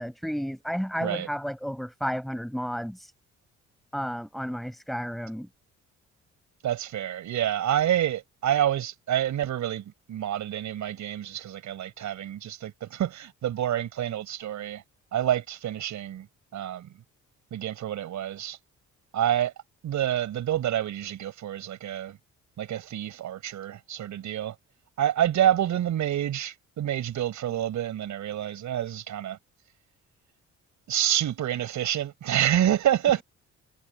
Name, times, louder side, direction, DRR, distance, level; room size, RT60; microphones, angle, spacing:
voice 1, 0.0-3.1 3.9-5.5, equal, ahead, 6.5 m, -32 dB
voice 2, 6.6-14.8 15.1-16.3 16.5-17.0 17.5-18.6 19.1-19.5 19.8-22.2 22.6-24.5 25.0-29.4 30.9-33.2, right 11 dB, 70° right, 5.8 m, -28 dB
cardioid pair, 90°, 30 cm